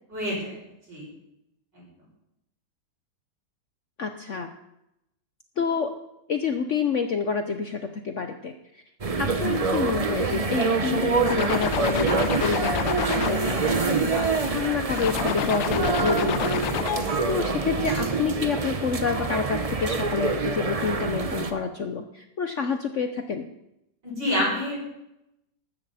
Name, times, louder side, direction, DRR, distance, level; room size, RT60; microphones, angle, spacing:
voice 1, 0.1-0.6 0.9-1.0 16.9-17.1 24.0-24.7, left 1 dB, 70° right, -4 dB, 7.6 m, -27 dB
voice 2, 4.0-4.5 5.6-5.9 6.3-8.8 9.2-23.5, left 5 dB, 55° left, 6 dB, 0.9 m, -28 dB
sound 1, 9.0-21.5, right 4 dB, 35° right, 0.5 m, -26 dB
sound 2, 11.3-14.5 14.9-17.2, left 10 dB, 90° left, 1.5 m, -30 dB
15.0 x 12.5 x 4.2 m, 0.85 s
omnidirectional pair, 2.0 m